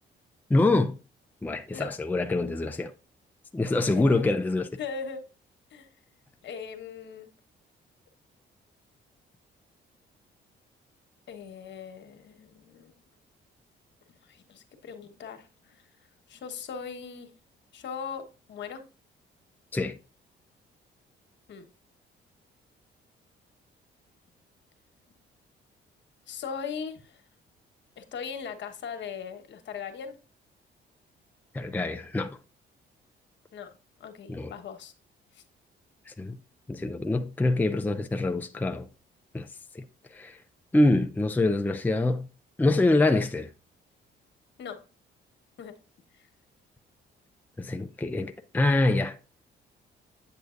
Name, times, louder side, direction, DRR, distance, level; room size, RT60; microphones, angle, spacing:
voice 1, 0.5-0.9 1.4-2.9 3.5-4.7 19.7-20.0 31.5-32.4 34.3-34.5 36.1-36.4 36.7-38.9 39.3-39.5 39.7-39.8 40.1-40.4 40.7-42.3 42.6-43.5 47.6-49.2, left 2 dB, 10° left, 0.5 m, -25 dB
voice 2, 3.9-4.3 4.8-5.2 5.7-5.9 6.4-7.3 11.3-12.9 14.3-15.8 16.3-17.3 17.7-18.8 21.5-21.7 26.3-27.2 28.0-30.2 33.5-33.7 34.0-34.9 35.3-35.4 44.6-44.8 45.6-45.7, left 6 dB, 65° left, 1.3 m, -39 dB
9.0 x 6.7 x 2.5 m
cardioid pair, 90°, 20 cm